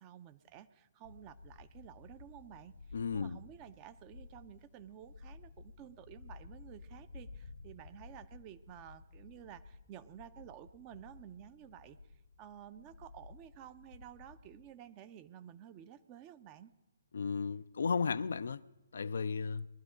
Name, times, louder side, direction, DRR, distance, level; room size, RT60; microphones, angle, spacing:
voice 1, 0.0-12.0 12.4-16.7, right 11 dB, 25° right, 0.7 m, -53 dB
sound 1, 1.0-14.7, left 3 dB, 80° left, 1.2 m, -54 dB
voice 2, 2.9-3.4 17.1-18.6 18.9-19.7, left 5 dB, 60° left, 0.4 m, -34 dB
20.0 x 12.0 x 5.0 m
figure-of-eight pair, 130°, 0 cm